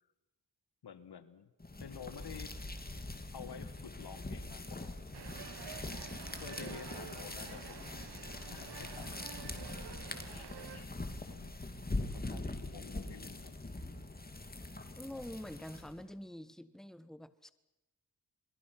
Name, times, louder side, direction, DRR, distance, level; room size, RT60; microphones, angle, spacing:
voice 1, 0.8-1.5 1.8-2.5 3.3-5.0 6.3-9.2 9.4-9.5 10.3-11.5 12.0-13.6, left 7 dB, 70° left, 13 dB, 1.6 m, -51 dB
sound 1, 1.6-16.1, left 2 dB, 20° left, 2.7 m, -43 dB
sound 2, 5.1-10.9, right 9 dB, 70° right, 1.1 m, -49 dB
voice 2, 15.0-17.5, left 1 dB, ahead, 14 dB, 1.3 m, -46 dB
27.0 x 22.0 x 5.9 m, 0.97 s
cardioid pair, 45°, 41 cm